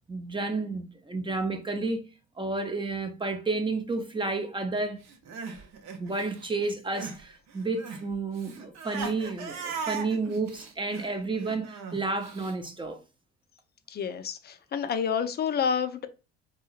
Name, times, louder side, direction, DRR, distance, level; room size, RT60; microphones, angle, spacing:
voice 1, 0.1-2.0 2.4-5.0 6.0-13.0, right 3 dB, 15° right, 0.6 m, -31 dB
Crying sobbing, 5.1-7.2 7.5-12.5, right 6 dB, 50° right, 0.8 m, -39 dB
voice 2, 13.9-16.1, left 7 dB, 30° left, 0.5 m, -29 dB
2.7 x 2.7 x 2.4 m
hypercardioid pair, 65°, 34 cm